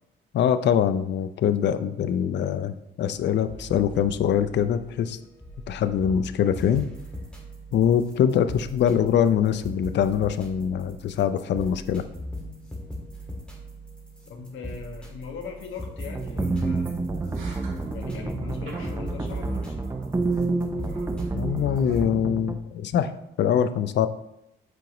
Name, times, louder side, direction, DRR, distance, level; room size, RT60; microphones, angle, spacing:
voice 1, 0.3-5.2 5.7-6.9 7.7-12.0 21.3-23.1 23.4-24.1, left 8 dB, 60° left, 11 dB, 0.5 m, -23 dB
sound 1, 3.5-22.1, equal, 5° left, 1.8 m, -40 dB
voice 2, 14.3-17.2 17.9-19.9, left 5 dB, 85° left, 3 dB, 1.2 m, -40 dB
sound 2, 15.2-15.3 15.6-15.7 16.0-16.1 16.4-22.2, equal, 80° right, 2.3 m, -41 dB
sound 3, 16.1-22.5, right 3 dB, 15° right, 0.6 m, -29 dB
7.8 x 5.1 x 3.0 m, 0.82 s
cardioid pair, 90°, 20 cm